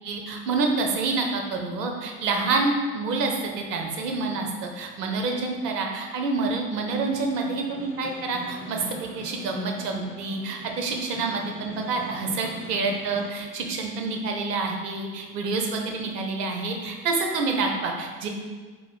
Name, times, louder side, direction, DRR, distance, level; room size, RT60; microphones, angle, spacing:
voice 1, 0.0-18.3, right 3 dB, 75° right, 2 dB, 0.8 m, -27 dB
Snare drum, 7.3-13.4, right 1 dB, 25° left, 1.4 m, -42 dB
4.1 x 2.7 x 3.0 m, 1.4 s
hypercardioid pair, 80°, 49 cm